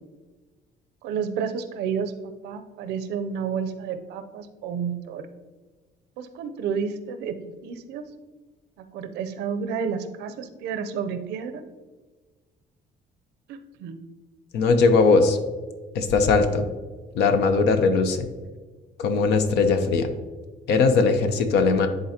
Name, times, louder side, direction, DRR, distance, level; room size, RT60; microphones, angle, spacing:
voice 1, 1.0-2.1 2.4-5.3 6.2-8.0 8.9-11.6 13.5-14.0, right 6 dB, 85° right, 9 dB, 0.6 m, -30 dB
voice 2, 14.5-15.4 15.9-16.7 17.1-18.3 19.0-20.1 20.7-21.9, left 4 dB, 80° left, 8 dB, 0.8 m, -19 dB
10.5 x 3.9 x 2.8 m, 1.3 s
cardioid pair, 110°, 17 cm